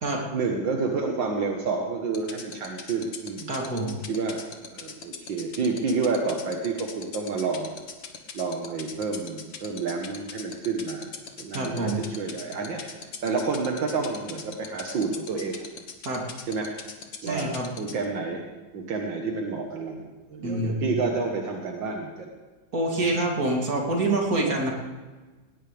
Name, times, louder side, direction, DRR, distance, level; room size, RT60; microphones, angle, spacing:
voice 1, 0.3-3.5 4.1-4.4 4.7-7.7 8.3-11.1 11.4-12.8 13.2-15.6 16.5-16.7 17.2-18.4 18.7-22.3 23.0-23.2, right 4 dB, 75° right, 1 dB, 2.1 m, -29 dB
sound 1, 2.1-18.0, left 6 dB, 80° left, 2.2 m, -38 dB
voice 2, 3.5-4.0 11.5-12.0 16.0-16.2 17.2-17.7 20.4-21.1 22.7-24.7, right 2 dB, 50° right, -2 dB, 3.3 m, -26 dB
19.5 x 19.0 x 3.5 m, 1.3 s
omnidirectional pair, 2.0 m